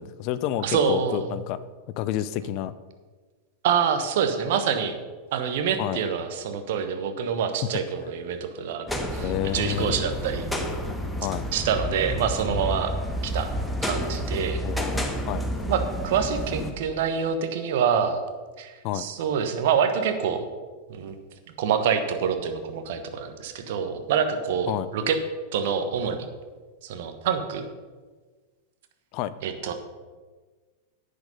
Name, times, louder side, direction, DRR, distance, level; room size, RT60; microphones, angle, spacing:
voice 1, 0.0-1.6 2.0-2.7 5.8-6.0 9.2-10.0 11.2-11.4 14.6-15.4 18.8-19.1 24.7-24.9 29.1-29.3, left 13 dB, 45° left, 15 dB, 0.5 m, -29 dB
voice 2, 0.6-1.3 3.6-5.0 5.3-10.4 11.5-12.9 13.2-13.5 13.8-14.6 15.7-18.2 18.6-20.4 20.9-21.1 21.6-25.2 25.5-26.2 26.8-27.6 29.4-29.7, right 7 dB, 55° right, 7 dB, 1.2 m, -26 dB
sound 1, 8.9-16.7, equal, 5° left, 1.4 m, -30 dB
10.5 x 8.3 x 5.5 m, 1.4 s
figure-of-eight pair, 90°, 0 cm